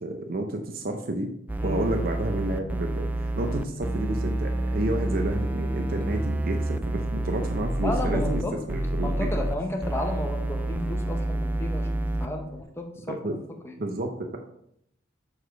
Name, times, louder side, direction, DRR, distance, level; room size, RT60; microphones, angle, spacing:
voice 1, 0.0-1.3 1.6-9.3 13.1-13.4 13.8-14.4, right 1 dB, 50° right, 5 dB, 0.7 m, -30 dB
sound 1, 1.5-8.4 8.7-9.6 9.8-12.3, right 1 dB, 10° right, 0.4 m, -28 dB
sound 2, 1.7-12.6, left 2 dB, 80° left, 0.8 m, -42 dB
voice 2, 7.8-8.5 9.0-11.9 12.2-13.4 13.6-13.7, left 1 dB, 15° left, 3 dB, 0.9 m, -33 dB
6.4 x 4.8 x 5.2 m, 0.75 s
head